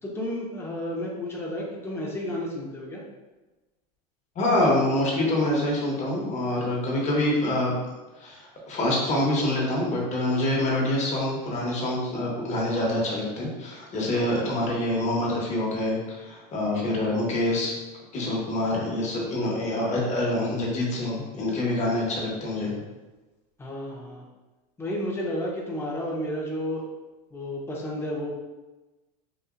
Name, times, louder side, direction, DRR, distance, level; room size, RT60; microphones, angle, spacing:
voice 1, 0.0-3.0 23.6-24.3 24.8-26.8 27.3-28.3, left 1 dB, 10° left, -3 dB, 0.9 m, -32 dB
voice 2, 4.3-7.7 8.2-17.7 18.1-22.7, left 1 dB, 35° left, -3 dB, 1.3 m, -26 dB
4.2 x 2.6 x 2.5 m, 1.1 s
hypercardioid pair, 100°, 20 cm